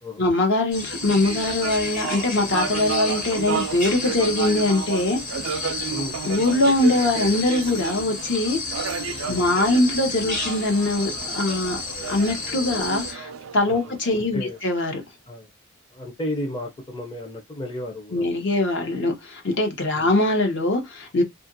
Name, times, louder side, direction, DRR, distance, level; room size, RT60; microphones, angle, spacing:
voice 1, 0.2-5.2 6.2-8.6 9.3-11.8 12.1-15.0 18.1-21.2, left 2 dB, 60° left, 0.8 m, -22 dB
sound 1, 0.7-13.1, left 3 dB, 40° left, 1.1 m, -32 dB
sound 2, 0.9-14.6, right 6 dB, 65° right, 0.4 m, -33 dB
voice 2, 5.9-6.2 9.2-9.5 13.7-13.9 14.3-14.6 15.3-15.5 15.9-18.5 19.9-20.1, left 1 dB, 20° left, 0.6 m, -33 dB
2.8 x 2.4 x 2.6 m
head